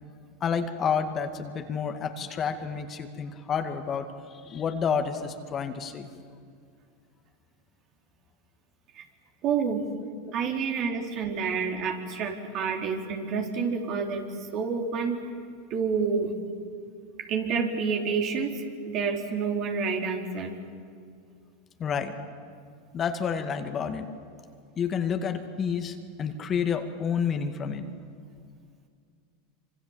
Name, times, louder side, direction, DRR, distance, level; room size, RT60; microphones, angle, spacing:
voice 1, 0.4-6.1 10.2-10.3 21.8-22.1 22.9-24.1 24.8-27.9, left 6 dB, 35° left, 6 dB, 2.1 m, -29 dB
voice 2, 9.4-9.8 10.3-14.3 14.5-15.2 15.7-16.3 17.3-20.6, right 5 dB, 50° right, 2 dB, 3.9 m, -28 dB
26.0 x 25.5 x 7.5 m, 2.2 s
hypercardioid pair, 90°, 0 cm